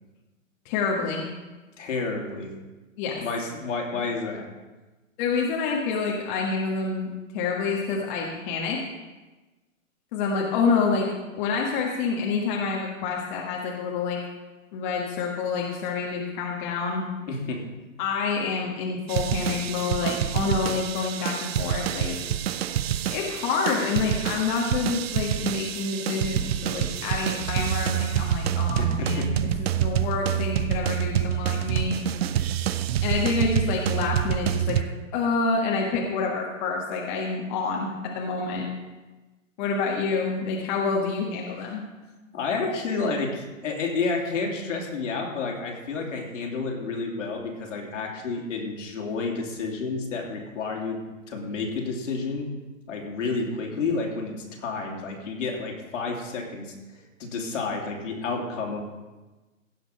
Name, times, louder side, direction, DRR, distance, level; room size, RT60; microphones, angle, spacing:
voice 1, 0.6-1.2 3.0-3.1 3.9-4.0 5.2-8.8 10.1-14.2 14.7-17.0 18.0-22.2 23.1-32.0 33.0-34.8 35.1-37.9 38.1-38.7 39.6-41.8, left 4 dB, 35° left, -2 dB, 1.6 m, -27 dB
voice 2, 1.8-2.5 3.2-4.5 17.3-17.7 28.8-29.3 42.3-51.0 51.3-52.5 52.9-56.7 57.2-58.8, left 4 dB, 65° left, 0 dB, 2.9 m, -30 dB
sound 1, 19.1-34.8, right 11 dB, 50° right, 0.6 m, -27 dB
16.5 x 5.9 x 5.4 m, 1.2 s
hypercardioid pair, 135°, 40 cm